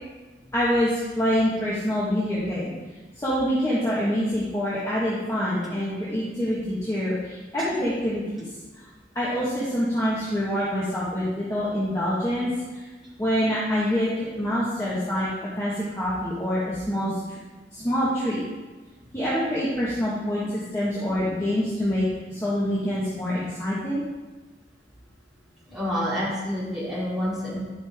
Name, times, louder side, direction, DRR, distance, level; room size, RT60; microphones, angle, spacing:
voice 1, 0.5-2.7 3.2-8.5 9.1-12.8 13.2-17.4 17.7-18.4 19.1-24.0, equal, 15° left, -9 dB, 1.4 m, -26 dB
voice 2, 25.7-27.6, equal, 5° right, -10 dB, 3.1 m, -28 dB
12.0 x 5.6 x 3.5 m, 1.2 s
head